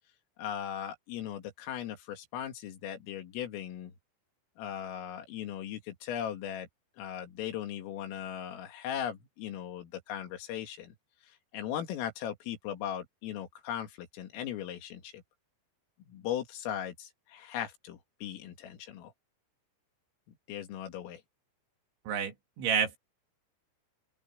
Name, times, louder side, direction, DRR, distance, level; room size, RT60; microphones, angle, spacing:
voice 1, 0.4-3.9 4.6-6.7 7.0-10.9 11.3-15.2 16.1-19.1 20.5-21.2, left 10 dB, 85° left, 4.9 m, -38 dB
voice 2, 22.1-23.0, right 7 dB, 65° right, 4.7 m, -30 dB
open air
omnidirectional pair, 5.8 m